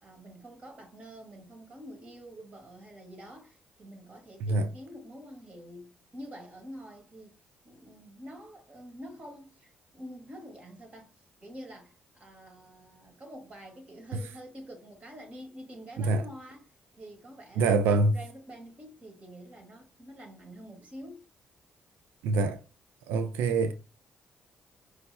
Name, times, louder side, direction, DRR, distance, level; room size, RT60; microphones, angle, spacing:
voice 1, 0.0-7.4 7.6-11.1 11.4-16.7 16.9-21.3, equal, 45° right, 2.1 m, -47 dB
voice 2, 17.6-18.1 22.2-22.6 23.1-23.7, right 3 dB, 80° right, 0.4 m, -25 dB
5.2 x 3.2 x 2.2 m
hypercardioid pair, 50°, 3 cm